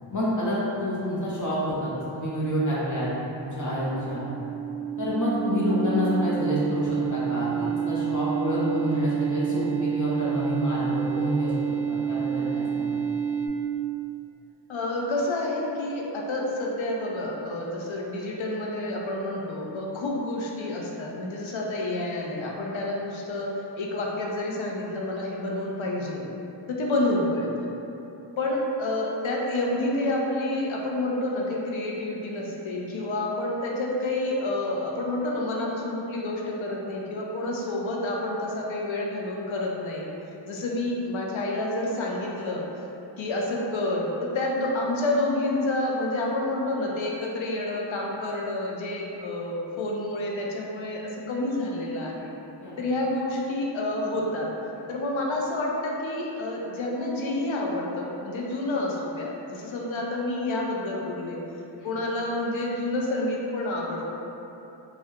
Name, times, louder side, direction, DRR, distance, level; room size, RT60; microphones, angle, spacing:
voice 1, 0.1-3.1 3.4-4.3 5.0-11.5 11.9-13.0 52.6-52.8 61.8-61.9, equal, 40° left, -8 dB, 0.9 m, -28 dB
sound 1, 3.2-13.5, right 8 dB, 15° right, 0.3 m, -29 dB
voice 2, 14.7-26.2 26.7-27.7 28.4-40.1 40.5-42.6 43.2-52.3 52.8-54.5 54.9-61.4 61.8-64.1, left 2 dB, 75° left, -2 dB, 0.5 m, -29 dB
3.5 x 2.2 x 2.7 m, 3.0 s
cardioid pair, 40°, 47 cm